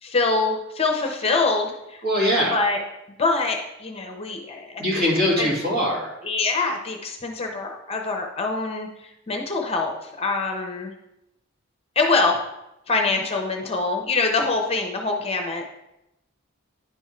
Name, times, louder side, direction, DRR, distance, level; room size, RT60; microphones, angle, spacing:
voice 1, 0.0-2.0 2.5-2.8 3.2-5.1 5.4-5.5 6.2-10.9 12.0-12.4 12.9-15.6, left 3 dB, 30° left, 3 dB, 0.7 m, -24 dB
voice 2, 2.0-2.6 4.8-6.1, equal, 45° right, -3 dB, 2.2 m, -22 dB
9.8 x 3.6 x 4.3 m, 0.89 s
head